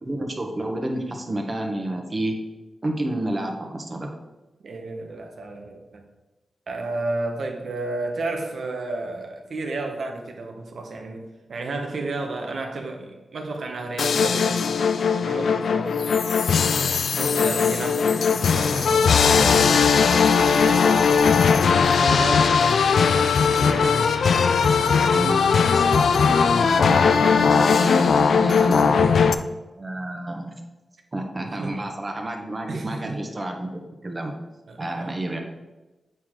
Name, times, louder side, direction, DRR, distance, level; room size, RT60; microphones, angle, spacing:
voice 1, 0.0-2.4 2.8-4.1 25.1-28.9 29.7-30.5 31.1-34.3 34.8-35.4, right 1 dB, 30° right, 3 dB, 1.2 m, -30 dB
voice 2, 4.6-6.0 6.7-14.8 15.1-16.4 17.0-19.9 20.5-21.1 22.0-22.9 23.5-24.0 28.2-28.4 28.8-29.3 31.4-31.8 32.7-33.2 34.7-35.2, right 2 dB, 70° right, 3 dB, 1.1 m, -32 dB
sound 1, 14.0-29.3, left 6 dB, 80° left, 0.4 m, -19 dB
8.0 x 4.9 x 3.7 m, 1.1 s
cardioid pair, 80°, 0 cm